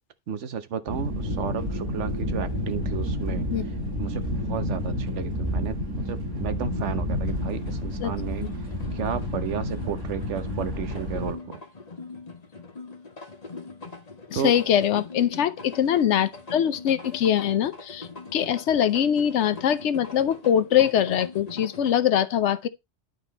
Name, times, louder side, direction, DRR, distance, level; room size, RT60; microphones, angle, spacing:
voice 1, 0.3-11.6 14.3-14.5, right 8 dB, 80° right, 1.2 m, -33 dB
sound 1, 0.9-11.3, left 1 dB, 20° right, 3.9 m, -30 dB
sound 2, 7.2-21.9, left 3 dB, 35° left, 1.4 m, -42 dB
voice 2, 14.3-22.7, left 9 dB, 75° left, 1.0 m, -23 dB
10.5 x 4.2 x 4.1 m
omnidirectional pair, 1.2 m